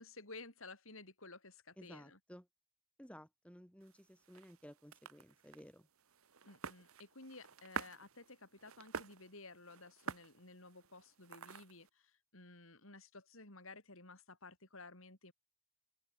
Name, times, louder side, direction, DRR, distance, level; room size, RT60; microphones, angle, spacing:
voice 1, 0.0-2.2 6.4-15.3, left 3 dB, 70° left, 6.9 m, -55 dB
voice 2, 1.8-2.5 3.0-5.9, equal, 5° left, 4.3 m, -56 dB
sound 1, 3.8-11.9, right 5 dB, 75° right, 1.3 m, -49 dB
head